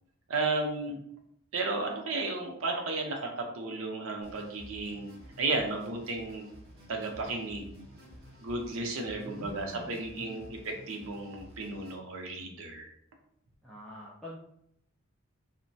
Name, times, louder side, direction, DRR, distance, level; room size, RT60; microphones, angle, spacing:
voice 1, 0.3-1.0 1.5-6.5 6.9-7.7 8.4-12.9, right 3 dB, 65° right, 2 dB, 0.6 m, -34 dB
sound 1, 4.2-12.0, equal, 45° right, 0.9 m, -52 dB
voice 2, 9.2-10.5 13.6-14.4, equal, ahead, -8 dB, 0.3 m, -46 dB
2.9 x 2.1 x 2.6 m, 0.71 s
head